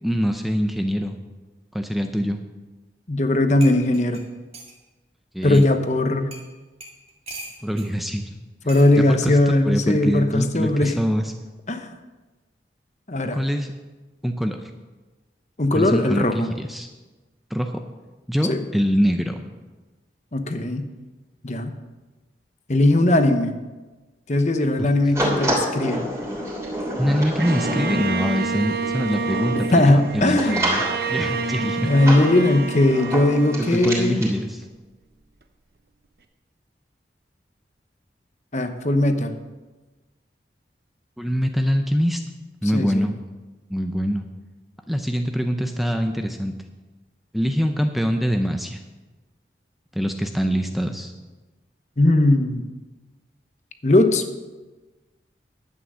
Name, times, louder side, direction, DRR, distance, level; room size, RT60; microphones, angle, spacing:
voice 1, 0.0-1.2 1.7-2.4 5.3-5.7 7.6-8.2 9.0-11.3 13.3-13.7 14.2-14.7 15.7-16.9 17.5-17.8 18.3-19.4 24.8-24.9 27.0-30.8 31.1-31.9 33.7-34.6 41.2-42.2 42.6-43.2 43.7-44.3 44.9-46.5 47.3-48.8 49.9-51.1, equal, ahead, 5 dB, 0.6 m, -24 dB
voice 2, 3.1-4.2 5.4-6.3 8.7-11.0 11.7-11.9 13.1-13.4 15.6-16.5 18.5-18.6 20.3-20.9 21.4-21.7 22.7-23.5 24.3-26.1 29.7-30.6 31.8-34.2 38.5-39.3 42.7-43.0 52.0-52.6 53.8-54.2, left 1 dB, 40° left, 8 dB, 0.9 m, -19 dB
sound 1, 3.2-3.3 3.6-4.8 5.5-5.7 6.3-6.5 6.8-7.9 8.7-8.9 10.0-10.3, right 1 dB, 35° right, 2.0 m, -40 dB
sound 2, 25.1-34.3, equal, 15° right, 3.1 m, -29 dB
Bowed string instrument, 27.4-34.6, right 3 dB, 55° right, 0.8 m, -28 dB
11.0 x 8.9 x 6.2 m, 1.2 s
head